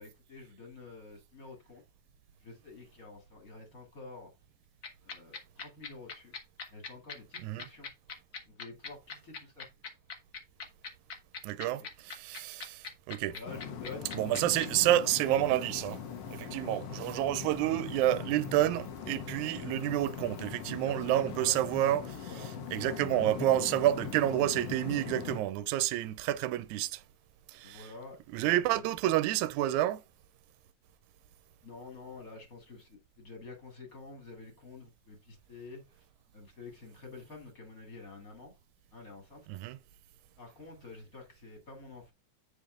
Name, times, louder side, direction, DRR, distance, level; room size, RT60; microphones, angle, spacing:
voice 1, 0.0-1.8 2.4-4.3 5.0-6.3 6.7-7.9 8.5-9.7 11.7-11.9 13.3-14.1 20.6-21.5 22.3-22.5 27.6-28.2 28.7-28.8 31.6-36.0 36.3-38.5 38.9-39.5 40.4-42.1, left 3 dB, 30° left, 1.9 m, -49 dB
sound 1, 4.8-14.7, left 5 dB, 75° left, 0.8 m, -41 dB
voice 2, 11.4-13.4 14.1-16.0 16.3-22.3 22.7-27.0 27.5-27.9 28.3-30.0 39.5-39.8, right 13 dB, 80° right, 1.8 m, -29 dB
sound 2, 13.4-25.4, left 7 dB, 90° left, 1.3 m, -41 dB
8.5 x 5.0 x 3.8 m
omnidirectional pair, 3.9 m